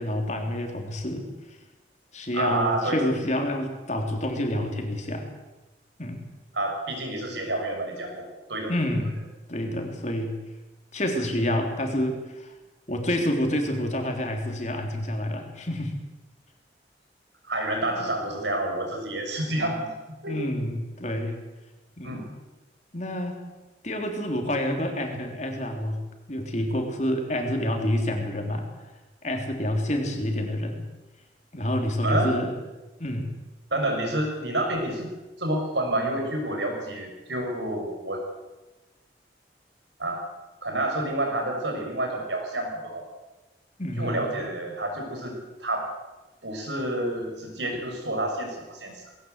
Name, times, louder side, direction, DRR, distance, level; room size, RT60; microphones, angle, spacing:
voice 1, 0.0-1.6 2.1-5.3 6.0-6.2 8.7-9.2 9.5-10.4 10.9-12.5 12.9-15.9 20.3-21.4 22.0-22.2 22.9-23.4 23.8-26.0 26.3-28.7 29.2-30.8 31.5-32.5 33.0-33.3 43.8-44.3, left 1 dB, 40° left, 3 dB, 3.4 m, -28 dB
voice 2, 2.3-3.0 6.5-8.8 9.6-9.8 17.5-19.9 20.2-20.4 22.0-22.3 32.0-32.3 33.7-35.1 35.4-38.2 40.0-40.2 40.6-43.0 44.0-45.9 46.4-49.0, right 1 dB, 75° right, 2 dB, 6.5 m, -29 dB
19.5 x 18.0 x 8.2 m, 1.1 s
head